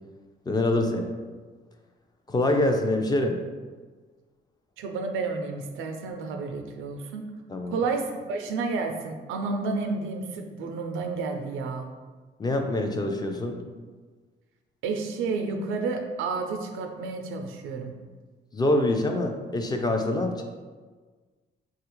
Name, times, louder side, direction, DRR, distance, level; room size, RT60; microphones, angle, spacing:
voice 1, 0.5-1.1 2.3-3.4 7.5-7.8 12.4-13.6 18.5-20.4, left 1 dB, 20° left, 3 dB, 0.4 m, -25 dB
voice 2, 4.8-7.2 7.7-11.9 14.8-17.9, right 4 dB, 85° right, 4 dB, 0.4 m, -31 dB
3.3 x 2.4 x 3.0 m, 1.4 s
cardioid pair, 90°, 20 cm